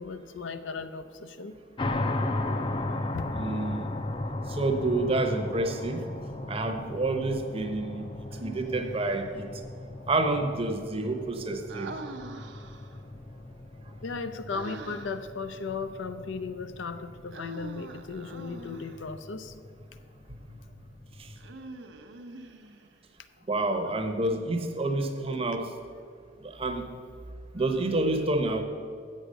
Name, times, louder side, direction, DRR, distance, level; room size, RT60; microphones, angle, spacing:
voice 1, 0.0-1.5 3.1-3.3 14.0-19.5, left 4 dB, 80° left, 10 dB, 0.5 m, -36 dB
sound 1, 1.8-21.5, left 2 dB, 25° left, 0.4 m, -37 dB
voice 2, 3.3-3.9 4.5-6.0 6.5-8.1 8.4-9.5 10.1-11.9 20.3-20.4 21.2-21.3 23.5-25.7 26.4-26.9 27.5-28.6, right 2 dB, 30° right, 5 dB, 0.8 m, -28 dB
Human voice, 8.3-9.2 11.7-13.0 14.5-15.3 17.3-19.1 21.4-23.0, right 3 dB, 70° right, 0.7 m, -44 dB
7.8 x 6.5 x 6.5 m, 2.3 s
head